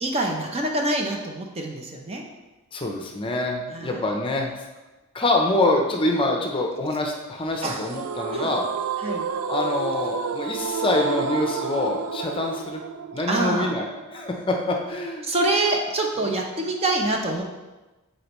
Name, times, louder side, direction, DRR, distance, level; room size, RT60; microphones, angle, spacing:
voice 1, 0.0-2.2 3.7-4.0 7.6-7.8 8.3-8.5 9.0-9.3 13.3-13.7 15.2-17.4, right 2 dB, 30° right, 2 dB, 0.6 m, -25 dB
voice 2, 2.7-4.5 5.1-8.6 9.5-12.8 13.1-13.8 14.1-15.3 16.2-16.3, left 2 dB, 25° left, 2 dB, 0.6 m, -25 dB
sound 1, 7.9-14.9, right 6 dB, 75° right, 0.4 m, -30 dB
8.4 x 4.4 x 3.0 m, 1.1 s
head